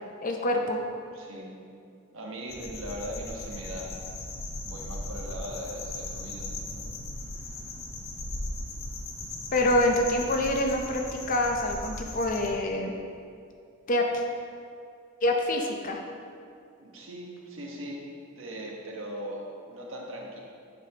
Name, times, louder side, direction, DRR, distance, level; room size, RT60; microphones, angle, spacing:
voice 1, 0.2-0.8 9.5-12.9 13.9-14.2 15.2-16.0, left 1 dB, 40° left, 2 dB, 0.6 m, -26 dB
voice 2, 1.1-1.5 2.1-3.9 4.6-6.5 6.8-6.9 16.8-18.0 18.3-20.4, equal, 70° right, -2 dB, 1.2 m, -39 dB
sound 1, 2.5-12.5, left 2 dB, 75° left, 0.9 m, -38 dB
9.3 x 5.8 x 2.9 m, 2.3 s
head